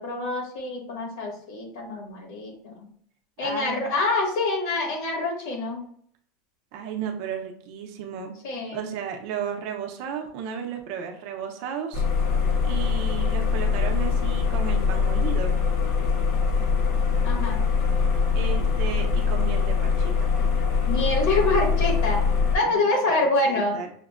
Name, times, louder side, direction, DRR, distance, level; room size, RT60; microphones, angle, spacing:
voice 1, 0.0-2.7 3.4-5.8 8.4-8.8 17.2-17.6 20.9-22.2 22.5-23.8, left 2 dB, 60° left, -1 dB, 1.5 m, -26 dB
voice 2, 3.4-3.9 6.7-8.3 8.7-12.0 12.6-15.6 18.3-20.3 22.6-23.9, right 7 dB, 45° right, 4 dB, 0.6 m, -34 dB
sound 1, 11.9-22.6, left 5 dB, 45° left, 0.6 m, -23 dB
5.7 x 2.1 x 2.4 m, 0.62 s
supercardioid pair, 180°, 0 cm